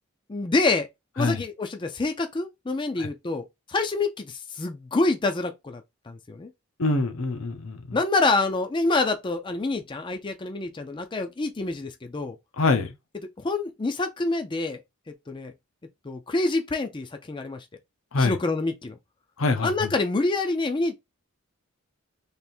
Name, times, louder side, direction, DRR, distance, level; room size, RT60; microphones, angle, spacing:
voice 1, 0.3-0.9 1.2-6.5 7.9-12.4 13.4-14.8 15.3-15.5 16.0-17.6 18.2-19.0 19.6-21.0, left 3 dB, 25° left, 0.4 m, -27 dB
voice 2, 6.8-8.0 12.6-12.9 18.1-18.4 19.4-19.9, left 3 dB, 80° left, 0.8 m, -25 dB
3.4 x 2.5 x 4.3 m
head